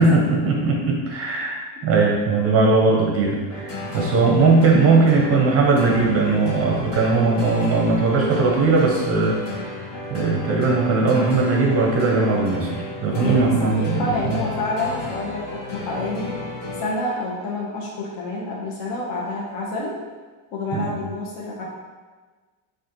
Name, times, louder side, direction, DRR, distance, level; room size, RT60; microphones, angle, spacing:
voice 1, 0.0-1.6 1.8-9.4 9.8-14.4 20.7-20.9, right 3 dB, 30° right, -1 dB, 0.5 m, -19 dB
sound 1, 3.5-17.3, left 2 dB, 45° left, 1.4 m, -33 dB
voice 2, 3.9-4.4 13.1-16.3 16.8-19.9 20.5-21.6, left 2 dB, 60° left, -4 dB, 0.9 m, -28 dB
6.1 x 2.5 x 2.8 m, 1.4 s
cardioid pair, 160°, 49 cm